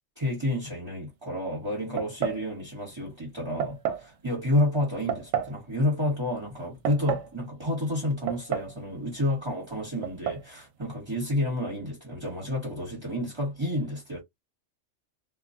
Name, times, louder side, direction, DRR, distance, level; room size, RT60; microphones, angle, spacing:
voice 1, 0.2-14.2, left 1 dB, 25° right, 1.1 m, -30 dB
sound 1, 2.0-2.5 3.6-4.1 5.1-5.6 6.6-7.3 8.3-8.8 9.1-9.2 10.0-10.5, right 8 dB, 70° right, 0.8 m, -30 dB
2.4 x 2.2 x 2.6 m
omnidirectional pair, 1.3 m